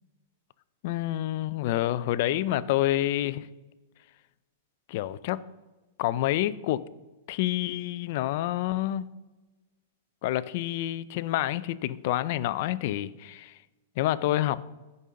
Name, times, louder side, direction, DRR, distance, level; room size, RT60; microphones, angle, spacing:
voice 1, 0.8-3.5 4.9-5.4 6.0-6.8 7.3-9.1 10.2-13.6 14.0-14.6, left 14 dB, 45° left, 0.4 m, -28 dB
15.0 x 5.3 x 3.7 m
supercardioid pair, 165°, 0 cm